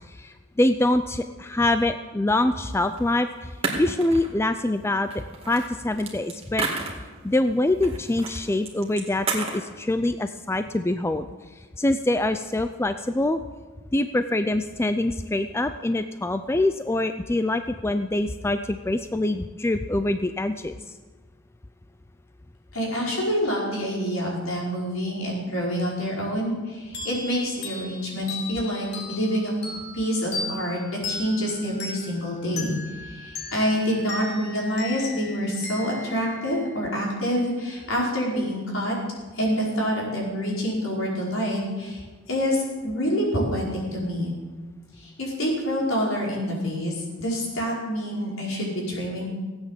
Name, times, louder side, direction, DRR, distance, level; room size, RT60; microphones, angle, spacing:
voice 1, 0.1-3.5 3.8-6.7 7.2-11.3 11.6-13.4 13.9-20.8, left 1 dB, 10° left, 9 dB, 0.4 m, -25 dB
sound 1, 3.0-3.1 3.6-4.4 5.1-7.3 7.8-8.4 8.7-9.6, right 3 dB, 30° right, 2.3 m, -30 dB
voice 2, 22.7-29.5 29.9-30.8 31.0-32.8 33.0-39.0 39.3-42.0 42.3-43.6 43.9-44.3 45.0-49.3, equal, 70° left, -3 dB, 5.1 m, -27 dB
sound 2, 26.9-37.2, left 3 dB, 50° left, 2.9 m, -37 dB
17.0 x 8.9 x 7.4 m, 1.4 s
head